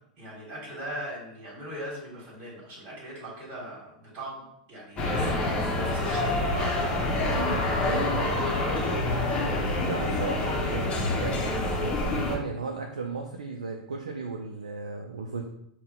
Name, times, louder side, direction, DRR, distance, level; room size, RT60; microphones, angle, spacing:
voice 1, 0.2-4.4 4.7-7.1, right 1 dB, 50° right, -5 dB, 1.4 m, -40 dB
sound 1, 5.0-12.4, left 2 dB, 30° left, 0.7 m, -27 dB
voice 2, 7.3-8.7 9.8-15.5, right 4 dB, 85° right, 2 dB, 0.4 m, -35 dB
4.1 x 2.2 x 3.6 m, 0.75 s
hypercardioid pair, 95°, 4 cm